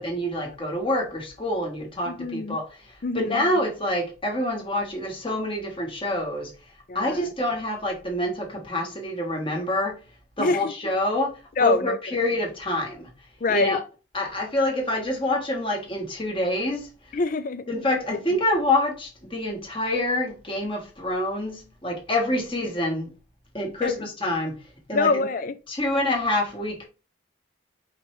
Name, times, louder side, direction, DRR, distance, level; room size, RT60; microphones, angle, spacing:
voice 1, 0.0-2.7 3.1-6.5 6.9-10.0 10.4-13.1 13.5-13.8 14.1-16.9 17.7-23.1 23.5-24.6 24.9-25.1 25.7-26.8, left 1 dB, 25° left, 1.3 m, -26 dB
voice 2, 2.1-2.6 3.0-3.4 6.9-7.3 10.4-10.7 11.6-12.0 13.4-13.8 17.1-17.6 18.1-18.2 23.8-23.9 24.9-25.5, left 3 dB, 40° left, 0.4 m, -25 dB
5.1 x 3.2 x 3.1 m
head